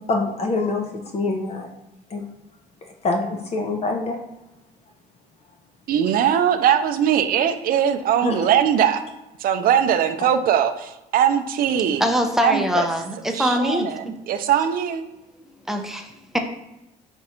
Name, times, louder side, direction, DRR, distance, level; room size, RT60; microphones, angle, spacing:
voice 1, 0.0-1.7 2.1-2.2 2.8-4.2 8.2-8.4, left 3 dB, 40° left, 2 dB, 0.6 m, -25 dB
voice 2, 5.9-9.0 9.4-12.0 12.4-12.9 13.3-15.0, right 9 dB, 60° right, 9 dB, 0.5 m, -20 dB
voice 3, 11.8-14.1 15.7-16.4, equal, ahead, 4 dB, 0.5 m, -23 dB
4.4 x 2.5 x 4.3 m, 0.96 s
cardioid pair, 110°, 17 cm